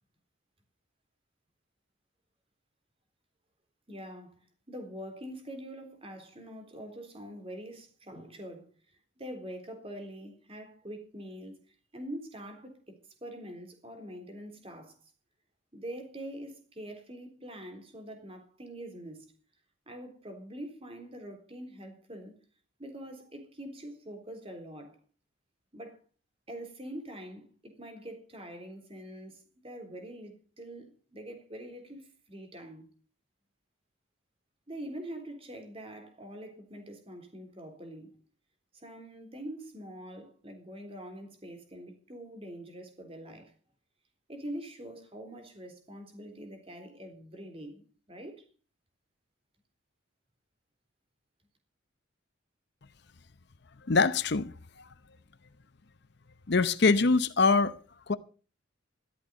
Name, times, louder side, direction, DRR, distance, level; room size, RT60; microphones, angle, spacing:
voice 1, 3.9-8.7 9.2-12.9 13.2-15.0 15.7-19.3 19.9-22.3 22.8-25.0 25.7-26.0 26.5-32.9 34.7-38.2 38.7-43.5 44.3-48.4, right 1 dB, 30° right, 3.7 m, -44 dB
voice 2, 53.9-54.9 56.5-57.8 58.1-58.2, left 4 dB, 55° left, 0.7 m, -24 dB
13.5 x 12.5 x 5.2 m
head